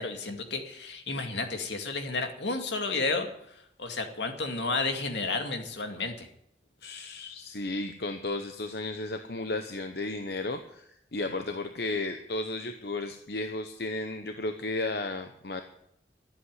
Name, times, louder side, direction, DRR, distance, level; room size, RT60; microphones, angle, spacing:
voice 1, 0.0-3.3 3.8-6.3, left 3 dB, 80° left, 5 dB, 2.3 m, -31 dB
voice 2, 6.8-15.6, left 2 dB, 60° left, 7 dB, 0.9 m, -34 dB
13.0 x 8.6 x 9.7 m, 0.74 s
head